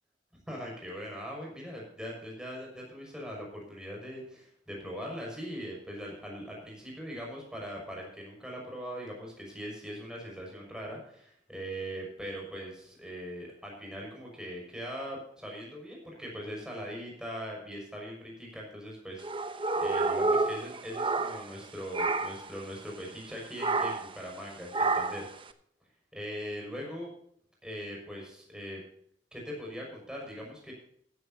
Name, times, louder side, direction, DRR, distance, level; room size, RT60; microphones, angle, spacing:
voice 1, 0.5-25.3 26.1-27.1 27.6-28.8 29.3-30.7, equal, 5° right, -2 dB, 5.9 m, -41 dB
sound 1, 19.2-21.6 21.9-22.5 23.6-24.2 24.7-25.3, right 3 dB, 30° right, 0.9 m, -29 dB
15.5 x 13.0 x 2.8 m, 0.68 s
head